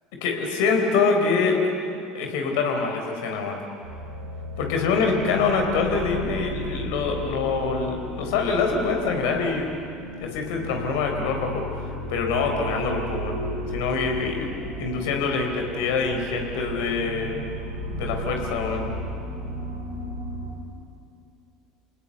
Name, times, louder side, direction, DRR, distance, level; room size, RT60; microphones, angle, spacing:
voice 1, 0.2-1.6 2.1-3.6 4.6-9.7 10.2-13.4 13.7-14.5 14.8-17.5 17.9-18.9, left 4 dB, 65° left, 3 dB, 4.0 m, -25 dB
sound 1, 3.8-20.5, equal, 85° right, 5.8 m, -34 dB
28.5 x 18.5 x 8.0 m, 2.6 s
figure-of-eight pair, 70°, 0 cm